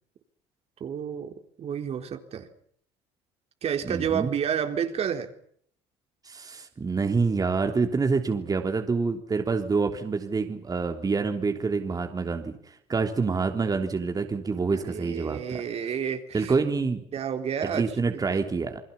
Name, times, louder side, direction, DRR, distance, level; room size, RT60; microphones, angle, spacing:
voice 1, 0.8-1.3 1.6-2.5 3.6-5.3 14.7-16.5 17.1-17.9 18.3-18.4, right 8 dB, 50° right, 6 dB, 3.9 m, -30 dB
voice 2, 3.8-4.3 6.2-15.6 16.3-17.0 17.7-18.8, right 4 dB, 25° right, 5 dB, 3.3 m, -27 dB
29.0 x 21.5 x 7.1 m, 0.64 s
supercardioid pair, 75°, 14 cm